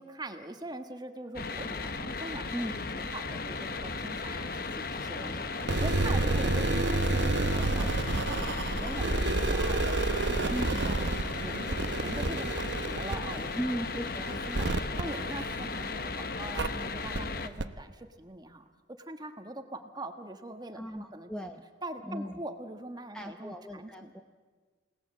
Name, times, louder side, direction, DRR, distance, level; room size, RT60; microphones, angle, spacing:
voice 1, 0.0-13.8 14.3-14.7 15.0-18.7 19.0-21.3 21.8-24.1, right 1 dB, 20° right, 7 dB, 1.4 m, -43 dB
sound 1, 1.3-17.5, left 4 dB, 50° left, 1.0 m, -36 dB
voice 2, 5.1-5.5 6.1-6.2 10.5-10.8 13.6-14.4 20.7-21.6 22.1-22.4 23.1-24.2, equal, 5° left, 4 dB, 0.8 m, -37 dB
sound 2, 5.6-16.0 16.5-16.7 17.1-17.2 17.6-17.7, right 2 dB, 65° right, 0.9 m, -30 dB
29.0 x 18.0 x 7.6 m, 1.4 s
head